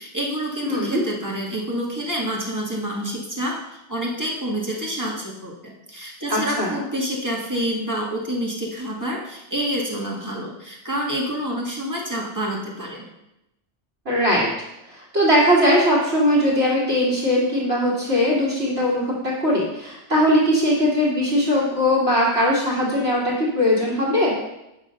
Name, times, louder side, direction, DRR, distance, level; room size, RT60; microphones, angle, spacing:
voice 1, 0.0-3.6 3.9-13.1, equal, 15° right, -3 dB, 1.9 m, -28 dB
voice 2, 0.7-1.0 6.3-6.7 14.1-14.5 14.9-24.4, equal, 65° right, -6 dB, 2.3 m, -20 dB
8.8 x 6.2 x 5.5 m, 0.90 s
omnidirectional pair, 1.1 m